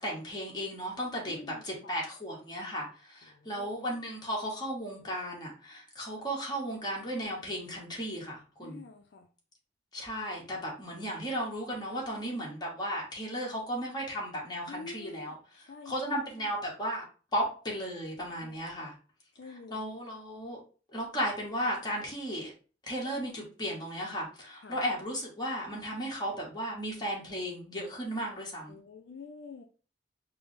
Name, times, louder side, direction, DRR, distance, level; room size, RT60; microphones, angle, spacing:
voice 1, 0.0-8.8 9.9-15.3 15.8-17.0 17.3-18.9 19.7-20.6 20.9-22.5 22.8-28.8, equal, 25° left, 1.2 m, -35 dB
voice 2, 1.3-1.9 3.3-3.8 8.6-9.3 14.7-16.5 18.4-18.6 19.3-19.8 24.6-24.8 28.7-29.6, left 4 dB, 70° left, 0.4 m, -48 dB
4.8 x 2.0 x 3.1 m
head